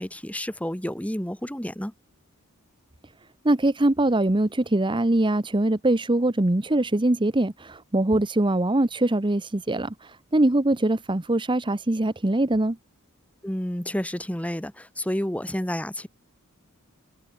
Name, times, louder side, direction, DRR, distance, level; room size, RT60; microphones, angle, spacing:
voice 1, 0.0-1.9 13.4-16.1, equal, 5° left, 2.0 m, -30 dB
voice 2, 3.4-12.8, right 1 dB, 20° right, 0.9 m, -23 dB
head